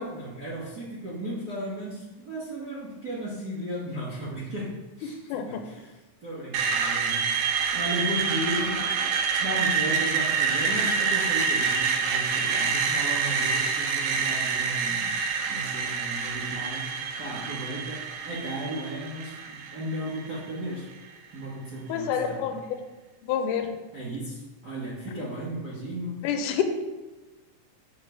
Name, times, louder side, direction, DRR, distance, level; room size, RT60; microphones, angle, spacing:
voice 1, 0.0-9.0 9.4-21.0 21.3-22.4 23.9-26.3, right 1 dB, 65° right, -8 dB, 0.9 m, -35 dB
voice 2, 5.3-5.6 21.9-22.8 23.2-23.7 26.2-26.6, left 8 dB, 80° left, 6 dB, 2.0 m, -28 dB
Screech, 6.5-20.5, right 5 dB, 85° right, 1.4 m, -27 dB
7.0 x 6.6 x 3.4 m, 1.2 s
omnidirectional pair, 3.8 m